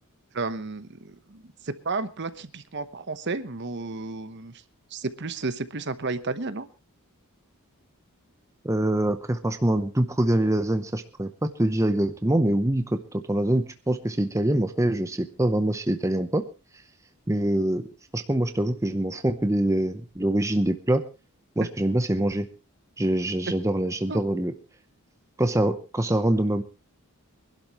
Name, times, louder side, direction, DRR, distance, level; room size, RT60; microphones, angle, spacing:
voice 1, 0.3-4.5 4.9-6.7 24.1-24.2, right 3 dB, 50° right, 12 dB, 1.0 m, -32 dB
voice 2, 8.6-16.5 17.3-17.9 18.1-21.0 21.6-22.5 23.0-24.5 25.4-26.6, right 1 dB, 15° right, 9 dB, 0.7 m, -24 dB
24.5 x 12.0 x 3.0 m, 0.29 s
head